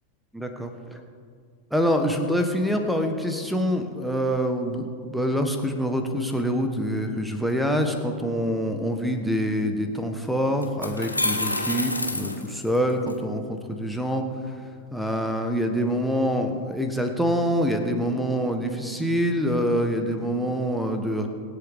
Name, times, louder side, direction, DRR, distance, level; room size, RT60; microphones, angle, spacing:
voice 1, 0.3-1.0 1.7-14.2 14.9-21.3, equal, ahead, 5 dB, 1.5 m, -25 dB
sound 1, 10.0-10.1 10.6-13.1, left 2 dB, 85° left, 1.1 m, -28 dB
24.5 x 8.3 x 3.8 m, 2.1 s
figure-of-eight pair, 90°, 0 cm